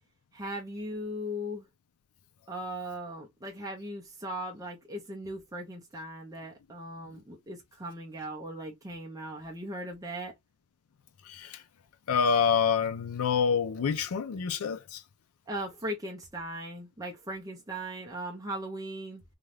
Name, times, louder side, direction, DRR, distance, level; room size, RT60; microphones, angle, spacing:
voice 1, 0.3-1.7 2.5-10.3 15.5-19.2, right 1 dB, 15° right, 0.6 m, -38 dB
voice 2, 11.2-11.6 12.1-15.0, left 6 dB, 75° left, 0.5 m, -27 dB
2.6 x 2.2 x 3.2 m
head